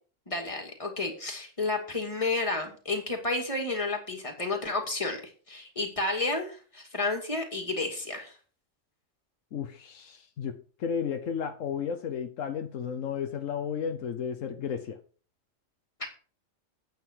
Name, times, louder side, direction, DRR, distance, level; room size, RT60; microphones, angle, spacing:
voice 1, 0.3-5.2 5.5-8.3, left 3 dB, 25° left, 2 dB, 2.4 m, -31 dB
voice 2, 9.5-15.0, left 7 dB, 80° left, 6 dB, 1.2 m, -33 dB
9.3 x 8.7 x 4.6 m, 0.39 s
omnidirectional pair, 1.3 m